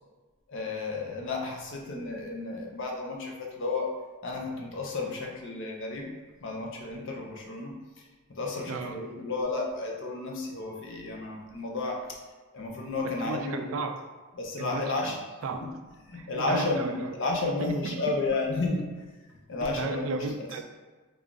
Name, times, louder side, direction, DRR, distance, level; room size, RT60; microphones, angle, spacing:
voice 1, 0.5-3.9 4.2-6.1 6.4-7.7 8.4-12.0 12.5-13.8 14.4-15.2 15.5-15.7 16.0-18.8 19.5-20.5, left 3 dB, 55° left, 0 dB, 0.6 m, -32 dB
voice 2, 13.2-14.0 14.6-15.7 16.1-17.1 17.6-18.2 19.6-20.6, right 4 dB, 65° right, 6 dB, 0.3 m, -35 dB
3.4 x 2.4 x 3.8 m, 1.3 s
head